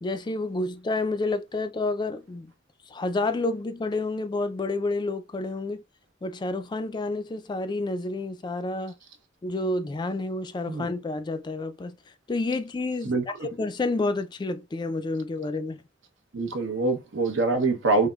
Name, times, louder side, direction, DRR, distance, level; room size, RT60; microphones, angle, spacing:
voice 1, 0.0-2.5 2.9-5.8 6.2-8.9 9.4-11.9 12.3-13.1 13.6-15.8, left 2 dB, 25° left, 0.3 m, -29 dB
voice 2, 13.0-13.5 16.3-18.1, right 3 dB, 75° right, 0.8 m, -25 dB
4.7 x 2.0 x 2.3 m
head